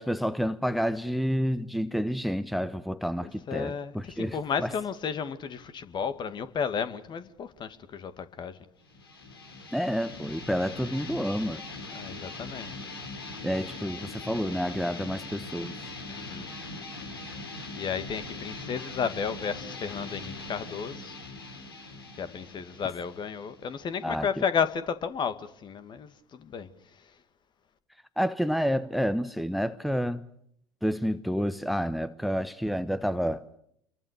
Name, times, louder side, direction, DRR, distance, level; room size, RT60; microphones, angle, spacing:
voice 1, 0.0-4.7 9.7-11.6 13.4-15.7 24.0-24.3 28.2-30.3 30.8-33.4, equal, ahead, 1.1 m, -29 dB
voice 2, 3.2-8.6 11.9-12.9 16.1-16.6 17.8-21.1 22.2-26.7, left 6 dB, 40° left, 2.3 m, -33 dB
sound 1, 8.9-24.3, left 3 dB, 85° left, 3.9 m, -41 dB
28.5 x 23.0 x 6.8 m
figure-of-eight pair, 65°, 12 cm